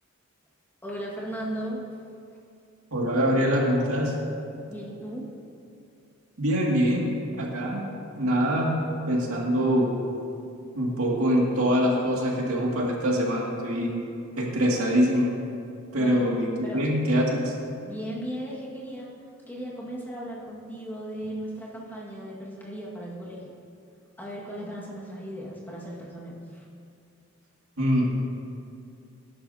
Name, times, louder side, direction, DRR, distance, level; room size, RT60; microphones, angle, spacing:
voice 1, 0.8-1.9 4.7-5.3 16.0-16.2 16.6-16.8 17.8-19.2 19.5-23.5 24.2-26.6, equal, 10° left, -5 dB, 1.9 m, -36 dB
voice 2, 2.9-4.2 6.4-7.1 7.4-7.8 8.1-8.7 9.1-9.9 10.7-13.9 14.4-15.3 15.9-17.5 27.8-28.1, equal, 80° right, -3 dB, 2.3 m, -24 dB
19.5 x 11.0 x 2.8 m, 2.5 s
head